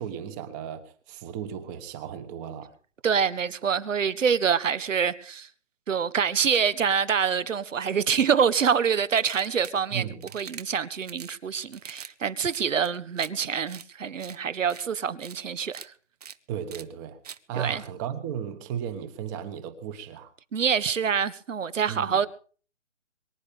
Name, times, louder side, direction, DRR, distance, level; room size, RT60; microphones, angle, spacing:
voice 1, 0.0-2.7 9.9-10.3 16.5-17.2 17.5-20.3 21.9-22.2, right 9 dB, 15° right, 1.1 m, -35 dB
voice 2, 3.0-5.5 5.9-15.9 17.5-17.8 20.5-22.3, right 7 dB, 85° right, 1.5 m, -26 dB
sound 1, 9.2-9.8 10.2-10.6 11.0-11.4 11.7-12.1 12.4-13.3 13.7-13.8 14.2-14.4 14.7-14.8 15.2-15.4 15.7-15.9 16.2-16.4 16.7-16.8 17.2-17.4, right 8 dB, 30° right, 0.7 m, -43 dB
23.5 x 10.5 x 5.2 m
hypercardioid pair, 165°, 37 cm